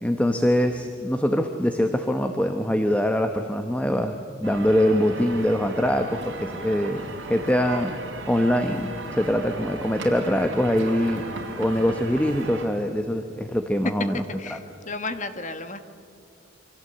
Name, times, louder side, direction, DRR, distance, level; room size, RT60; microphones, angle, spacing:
voice 1, 0.0-8.0 8.3-11.3 11.6-14.2 14.5-14.6, equal, 5° left, 6 dB, 1.0 m, -23 dB
sound 1, 4.4-12.6, right 2 dB, 70° right, 4.2 m, -36 dB
voice 2, 14.1-15.8, left 3 dB, 40° left, 9 dB, 1.4 m, -34 dB
28.5 x 24.0 x 8.0 m, 2.4 s
head